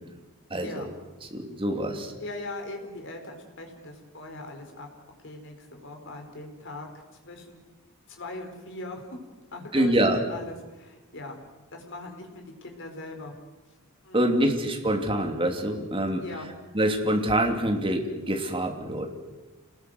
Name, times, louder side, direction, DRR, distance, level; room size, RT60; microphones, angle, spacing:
voice 1, 0.5-0.9 1.3-2.1 9.7-10.2 14.1-16.2 16.7-19.1, right 1 dB, 25° right, 3 dB, 2.9 m, -25 dB
voice 2, 2.2-4.9 5.2-6.9 7.2-7.6 8.1-9.2 9.5-11.4 11.7-13.3 14.0-14.4 16.2-16.5, left 2 dB, 55° left, 4 dB, 4.7 m, -40 dB
28.0 x 19.5 x 8.0 m, 1.2 s
head